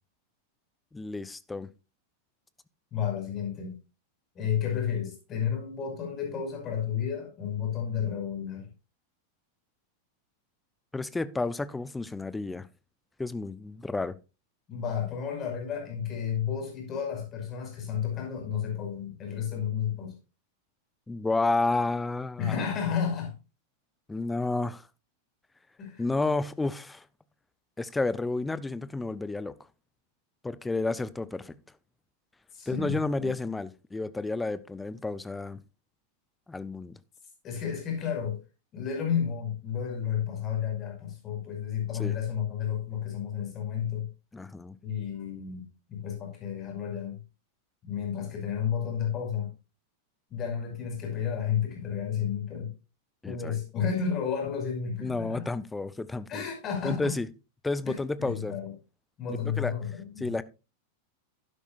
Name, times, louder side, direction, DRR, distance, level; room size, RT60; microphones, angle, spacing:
voice 1, 0.9-1.7 10.9-12.7 13.2-14.1 21.1-22.6 24.1-24.9 26.0-27.0 27.8-29.5 30.4-31.6 32.7-35.6 36.5-36.9 42.0-42.1 44.3-44.8 53.2-53.6 55.0-56.3 56.8-57.3 57.6-58.5 59.4-59.7 60.2-60.4, left 3 dB, 10° left, 0.7 m, -31 dB
voice 2, 2.9-3.8 4.4-8.7 14.7-20.1 22.4-23.4 25.8-26.0 32.5-33.3 37.4-38.4 38.7-44.1 44.8-47.2 47.8-49.5 50.3-52.7 53.2-55.5 56.3-57.1 57.9-58.7 59.2-60.4, left 8 dB, 30° left, 5.5 m, -32 dB
12.0 x 9.9 x 2.5 m
figure-of-eight pair, 90°, 0 cm